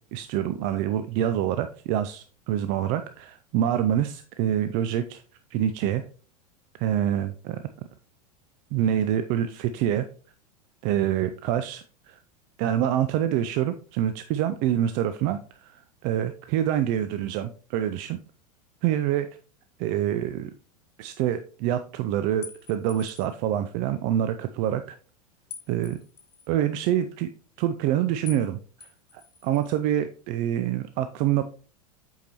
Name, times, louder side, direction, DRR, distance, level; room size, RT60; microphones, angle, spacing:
voice 1, 0.1-5.2 5.5-6.0 6.8-7.6 8.7-10.1 10.8-12.2 12.6-18.2 18.8-19.3 19.8-20.5 21.0-24.8 25.7-26.0 26.5-27.3 27.6-28.6 29.1-31.4, right 11 dB, 40° right, 10 dB, 0.4 m, -26 dB
sound 1, 22.4-23.4 25.5-26.5 28.3-28.5 28.8-29.8, left 6 dB, 75° left, 0.9 m, -45 dB
8.2 x 4.6 x 2.9 m, 0.40 s
figure-of-eight pair, 85°, 20 cm